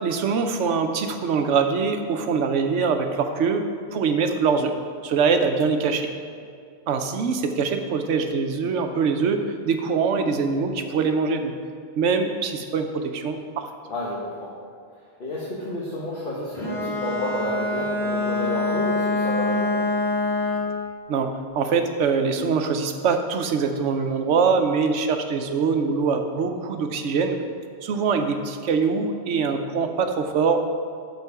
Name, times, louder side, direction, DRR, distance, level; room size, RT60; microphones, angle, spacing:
voice 1, 0.0-3.6 3.9-4.7 5.0-6.1 6.9-11.5 12.0-13.7 21.1-27.4 27.8-30.6, right 5 dB, 90° right, 6 dB, 1.1 m, -23 dB
voice 2, 13.8-14.5 15.2-19.9, left 1 dB, 55° left, -4 dB, 1.3 m, -30 dB
Bowed string instrument, 16.5-20.8, left 2 dB, ahead, 1.5 m, -25 dB
12.0 x 4.5 x 4.7 m, 2.2 s
omnidirectional pair, 1.2 m